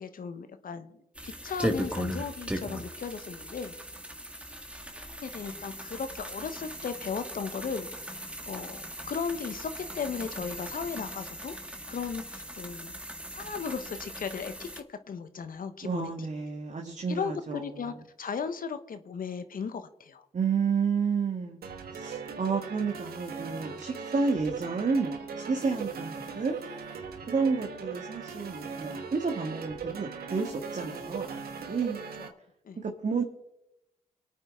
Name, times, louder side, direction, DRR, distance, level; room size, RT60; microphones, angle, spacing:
voice 1, 0.0-3.7 4.9-11.5 11.9-12.9 13.3-16.1 17.1-20.2 32.6-32.8, left 6 dB, 60° left, 10 dB, 1.1 m, -36 dB
sound 1, 1.1-14.8, right 1 dB, 5° right, 1.6 m, -38 dB
voice 2, 15.8-18.0 20.3-26.6 27.3-32.0 32.8-33.2, right 5 dB, 50° right, 2 dB, 1.7 m, -31 dB
sound 2, 21.6-32.3, right 5 dB, 75° right, 1.2 m, -39 dB
23.0 x 8.8 x 3.8 m, 0.87 s
supercardioid pair, 45°, 16 cm